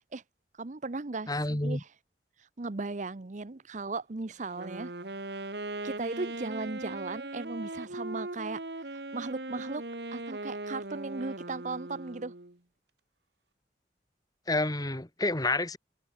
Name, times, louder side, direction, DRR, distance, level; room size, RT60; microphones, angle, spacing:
voice 1, 0.6-1.9 2.4-4.9 5.8-8.6 8.9-9.8 10.1-12.3, right 3 dB, 45° right, 0.8 m, -37 dB
voice 2, 1.3-1.8 14.5-15.8, left 2 dB, 20° left, 1.8 m, -29 dB
Wind instrument woodwind instrument, 4.5-12.6, right 2 dB, 65° right, 2.2 m, -39 dB
head